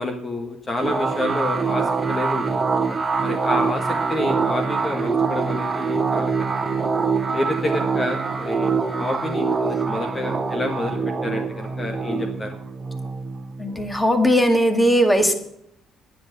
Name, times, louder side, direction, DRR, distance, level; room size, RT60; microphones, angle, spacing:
voice 1, 0.0-2.6 3.2-6.5 7.3-12.6, left 2 dB, 30° left, 5 dB, 1.7 m, -28 dB
sound 1, 0.8-14.0, right 4 dB, 30° right, 1.4 m, -24 dB
voice 2, 13.6-15.3, equal, 10° left, 6 dB, 2.2 m, -18 dB
10.5 x 10.0 x 5.4 m, 0.74 s
supercardioid pair, 80°, 0 cm